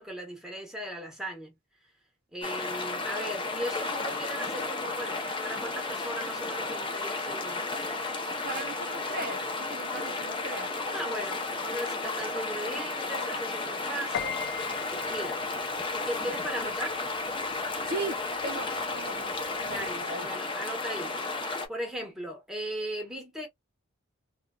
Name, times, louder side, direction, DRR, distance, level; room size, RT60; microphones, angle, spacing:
voice 1, 0.0-1.6 2.3-7.6 10.9-14.5 15.1-15.4 15.9-17.0 19.7-21.2 21.7-23.5, right 1 dB, 5° right, 1.1 m, -37 dB
sound 1, 2.4-21.7, left 3 dB, 25° left, 0.7 m, -33 dB
voice 2, 8.4-10.7 16.6-16.8 17.8-18.2 18.4-20.3, right 3 dB, 50° right, 0.7 m, -38 dB
Piano, 14.1-20.0, left 8 dB, 60° left, 0.3 m, -43 dB
2.9 x 2.3 x 2.3 m
head